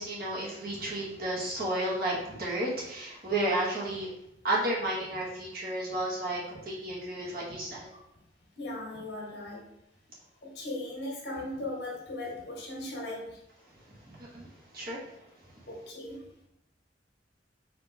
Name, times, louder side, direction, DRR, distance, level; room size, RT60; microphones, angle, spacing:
voice 1, 0.0-4.1 4.4-7.9 14.1-14.5 14.7-15.0, right 1 dB, 55° right, -4 dB, 1.4 m, -32 dB
voice 2, 8.5-9.6 10.4-13.4 15.7-16.2, left 1 dB, 65° left, -3 dB, 1.5 m, -38 dB
4.7 x 2.9 x 4.0 m, 0.81 s
head